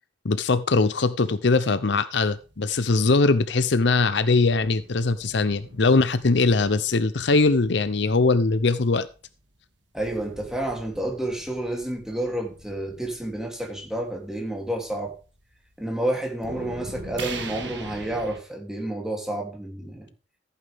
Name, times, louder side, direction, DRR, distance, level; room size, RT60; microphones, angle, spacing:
voice 1, 0.2-9.1, left 3 dB, 60° left, 0.7 m, -21 dB
sound 1, 2.2-9.2 10.0-15.8 16.2-18.4, right 2 dB, 60° right, 2.2 m, -42 dB
voice 2, 9.9-15.1 15.8-20.1, right 1 dB, 5° right, 2.9 m, -30 dB
14.5 x 8.7 x 3.6 m
head